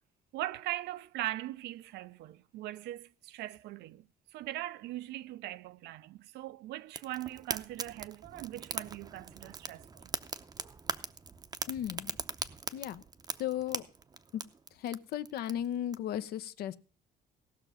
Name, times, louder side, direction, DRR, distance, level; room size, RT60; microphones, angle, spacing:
voice 1, 0.3-10.1, right 15 dB, 80° right, 0.6 m, -40 dB
Fire, 6.9-16.0, right 4 dB, 25° right, 0.6 m, -41 dB
voice 2, 11.7-12.1 12.7-13.0 13.4-13.8 14.3-14.4 14.8-16.8, left 11 dB, 70° left, 0.7 m, -35 dB
17.0 x 6.2 x 5.5 m
cardioid pair, 110°, 17 cm